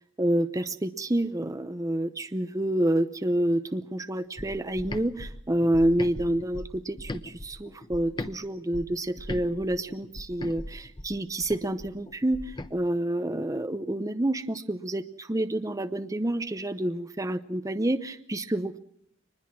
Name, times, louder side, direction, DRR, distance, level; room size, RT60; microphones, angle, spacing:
voice 1, 0.2-18.8, right 1 dB, 20° right, 11 dB, 0.7 m, -28 dB
sound 1, 4.4-8.3 8.7-12.7, left 1 dB, 25° left, 1.0 m, -39 dB
24.5 x 20.0 x 6.1 m, 0.72 s
head